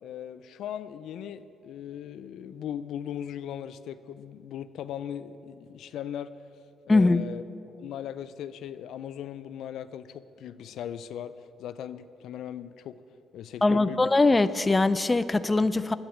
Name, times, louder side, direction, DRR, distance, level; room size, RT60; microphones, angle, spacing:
voice 1, 0.0-6.3 6.9-7.4 7.7-13.0 13.3-14.1, left 9 dB, 80° left, 13 dB, 0.4 m, -38 dB
voice 2, 6.9-7.2 13.6-15.9, left 3 dB, 20° left, 13 dB, 0.4 m, -22 dB
11.0 x 8.9 x 8.5 m, 2.8 s
cardioid pair, 90°, 0 cm